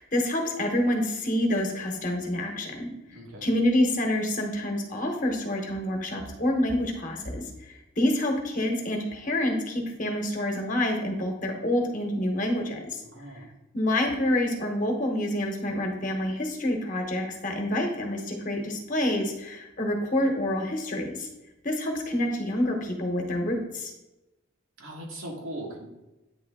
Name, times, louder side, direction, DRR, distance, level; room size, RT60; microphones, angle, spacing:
voice 1, 0.0-2.9 3.4-7.4 8.0-13.0 13.7-21.3 21.6-23.9, left 1 dB, 40° left, 2 dB, 1.1 m, -27 dB
voice 2, 3.1-3.4 13.0-13.5 24.8-25.8, right 1 dB, 85° right, -1 dB, 1.5 m, -39 dB
8.8 x 3.3 x 3.5 m, 0.98 s
head